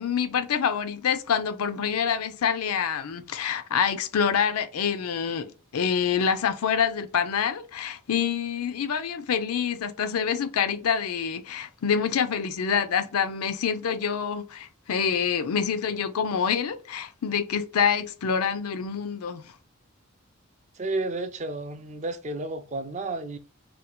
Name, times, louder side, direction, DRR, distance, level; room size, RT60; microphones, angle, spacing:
voice 1, 0.0-19.4, left 7 dB, 85° left, 0.5 m, -26 dB
voice 2, 20.8-23.4, right 2 dB, 35° right, 0.4 m, -31 dB
2.7 x 2.1 x 4.1 m
head